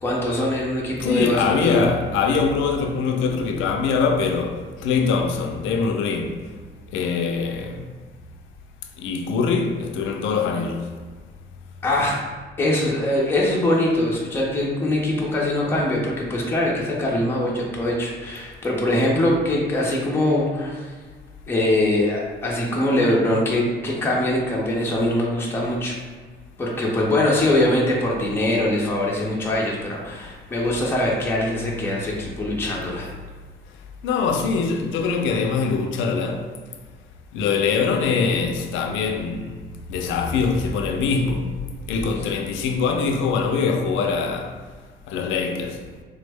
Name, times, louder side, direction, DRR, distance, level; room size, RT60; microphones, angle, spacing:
voice 1, 0.0-1.8 11.8-12.2 12.6-20.8 21.5-25.9 26.6-33.1, left 1 dB, 10° left, 0.5 m, -22 dB
voice 2, 1.0-6.5 6.9-7.8 9.0-10.9 34.0-36.5 37.3-41.5 41.9-44.6 45.1-45.8, left 5 dB, 85° left, 0.4 m, -23 dB
3.5 x 2.0 x 3.4 m
cardioid pair, 130°, 19 cm